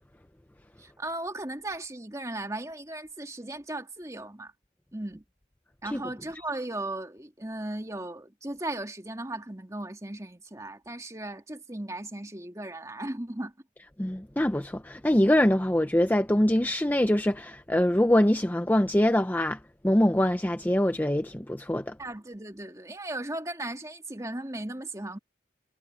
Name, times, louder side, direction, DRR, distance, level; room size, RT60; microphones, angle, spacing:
voice 1, 0.8-4.5 4.9-5.2 5.8-13.5 22.0-25.2, right 1 dB, 15° right, 2.4 m, -36 dB
voice 2, 14.0-19.6 19.8-21.9, left 1 dB, 10° left, 0.6 m, -24 dB
head